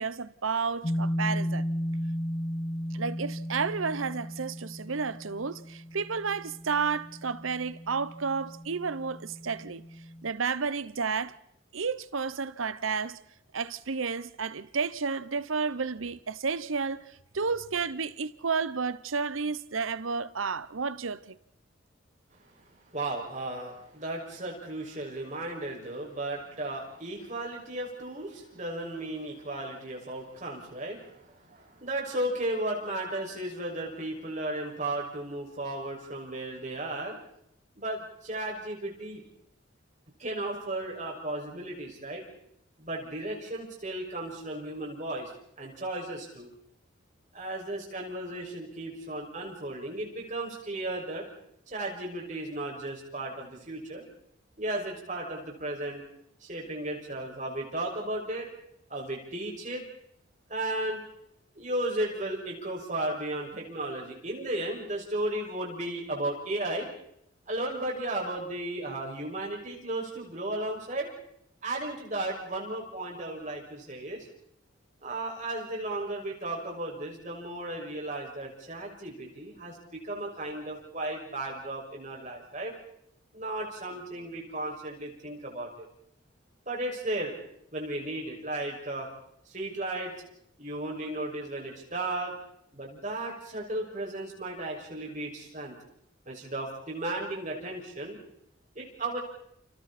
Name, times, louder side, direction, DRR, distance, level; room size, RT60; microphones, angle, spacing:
voice 1, 0.0-1.7 2.9-9.8 10.2-11.4 11.7-13.2 13.5-21.4, right 5 dB, 80° right, 0.9 m, -31 dB
sound 1, 0.8-10.3, equal, 30° left, 1.7 m, -35 dB
voice 2, 22.8-37.2 37.8-39.2 40.2-42.2 42.8-45.3 45.6-46.5 47.3-51.3 51.7-54.1 54.6-56.0 56.4-58.5 58.9-59.8 60.5-61.0 61.5-66.9 67.5-71.1 71.6-74.3 75.0-82.7 83.3-85.9 86.7-87.3 87.7-89.1 89.5-90.1 90.6-92.3 92.7-95.7 96.3-98.2 98.7-99.2, right 1 dB, 35° right, 6.2 m, -35 dB
29.5 x 28.5 x 4.3 m
head